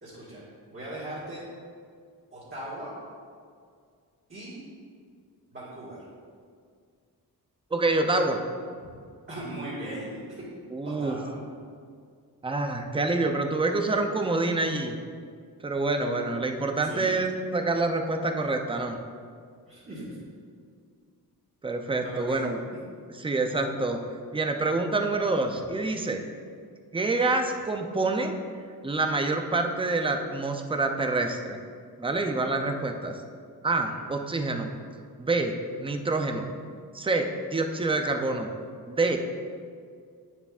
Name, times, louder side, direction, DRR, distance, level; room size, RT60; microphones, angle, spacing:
voice 1, 0.0-1.4 2.3-2.9 4.3-4.6 5.5-6.0 8.8-8.9 9.3-10.4 10.8-11.3 16.8-17.1 19.7-20.2 22.0-22.4 33.9-34.0, right 1 dB, 30° right, -10 dB, 1.7 m, -39 dB
voice 2, 7.7-8.4 10.7-11.2 12.4-15.0 15.6-19.0 21.6-22.6 23.1-24.0 24.3-26.2 26.9-28.3 28.8-31.6 32.0-33.2 33.6-34.7 35.2-36.5 36.9-38.5 38.9-39.2, right 2 dB, 15° right, 5 dB, 0.4 m, -27 dB
9.2 x 7.2 x 2.4 m, 2.1 s
wide cardioid pair, 150°, 39 cm